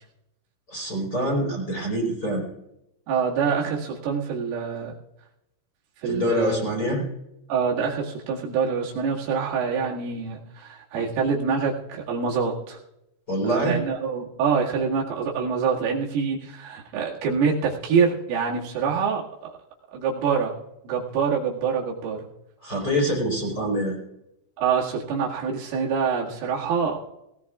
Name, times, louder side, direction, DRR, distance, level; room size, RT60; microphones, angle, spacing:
voice 1, 0.7-2.4 6.0-7.0 13.3-13.8 22.6-24.0, equal, 20° left, -3 dB, 4.1 m, -25 dB
voice 2, 3.1-4.9 6.0-6.7 7.5-12.8 13.4-19.5 19.9-20.6 20.8-22.3 24.6-27.0, right 6 dB, 80° right, -4 dB, 4.6 m, -25 dB
19.5 x 18.5 x 2.4 m, 0.87 s
omnidirectional pair, 5.8 m